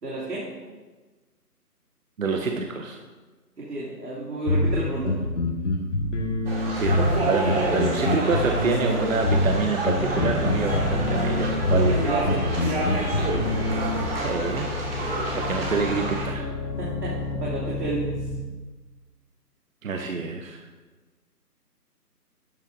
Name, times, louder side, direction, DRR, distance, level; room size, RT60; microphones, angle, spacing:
voice 1, 0.0-0.5 3.6-5.2 11.9-12.4 16.8-18.2, right 2 dB, 75° right, -6 dB, 2.7 m, -31 dB
voice 2, 2.2-3.0 6.8-12.0 12.8-12.9 14.2-14.7 14.9-16.5 19.8-20.6, right 4 dB, 55° right, 4 dB, 0.8 m, -27 dB
sound 1, 4.5-14.1, left 2 dB, 50° left, 1.8 m, -25 dB
sound 2, 6.5-16.3, right 2 dB, 35° right, 2.3 m, -29 dB
sound 3, 9.9-18.4, left 3 dB, 80° left, 1.6 m, -32 dB
12.5 x 9.0 x 2.6 m, 1.3 s
hypercardioid pair, 170°, 48 cm